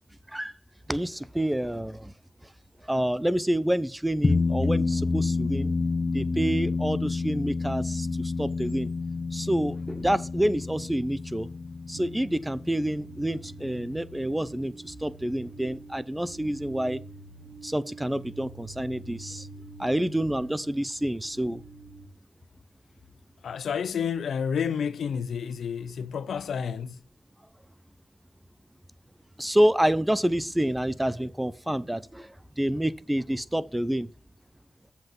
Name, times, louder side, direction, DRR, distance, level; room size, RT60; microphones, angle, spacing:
voice 1, 0.9-2.1 2.9-5.7 6.1-8.9 9.3-11.5 11.9-17.0 17.6-19.5 19.8-21.6 29.4-34.1, right 1 dB, 10° right, 0.7 m, -28 dB
sound 1, 4.2-14.9, left 3 dB, 35° left, 0.6 m, -29 dB
sound 2, 11.9-22.1, right 3 dB, 85° right, 1.0 m, -47 dB
voice 2, 23.4-27.0, left 7 dB, 80° left, 0.5 m, -30 dB
7.3 x 5.8 x 5.3 m
cardioid pair, 55°, 0 cm